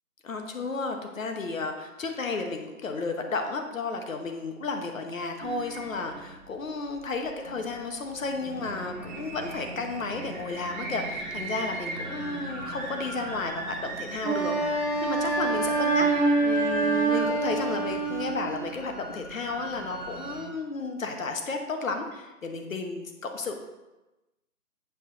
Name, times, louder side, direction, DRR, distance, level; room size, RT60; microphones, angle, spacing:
voice 1, 0.2-23.5, left 3 dB, 55° left, 4 dB, 1.2 m, -33 dB
sound 1, 5.4-20.4, right 1 dB, 30° right, 1.3 m, -38 dB
Wind instrument woodwind instrument, 14.2-18.5, right 3 dB, 5° right, 1.6 m, -26 dB
8.2 x 4.3 x 5.1 m, 1.0 s
hypercardioid pair, 165°, 46 cm